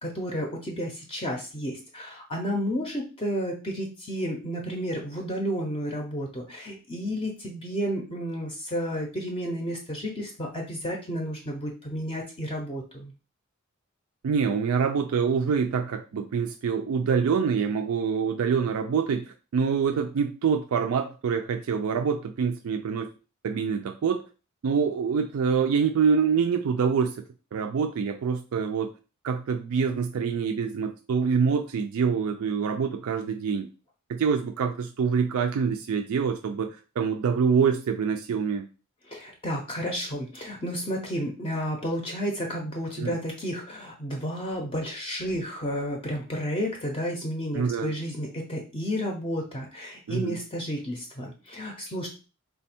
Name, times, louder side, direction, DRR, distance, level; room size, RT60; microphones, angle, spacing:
voice 1, 0.0-13.1 39.1-52.1, equal, 25° left, 1 dB, 0.5 m, -32 dB
voice 2, 14.2-23.1 23.4-24.2 24.6-27.2 27.5-28.9 29.2-33.7 34.1-38.7 43.0-43.1 47.5-47.9 50.1-50.4, right 6 dB, 85° right, 5 dB, 0.4 m, -25 dB
3.3 x 2.2 x 4.2 m, 0.34 s
head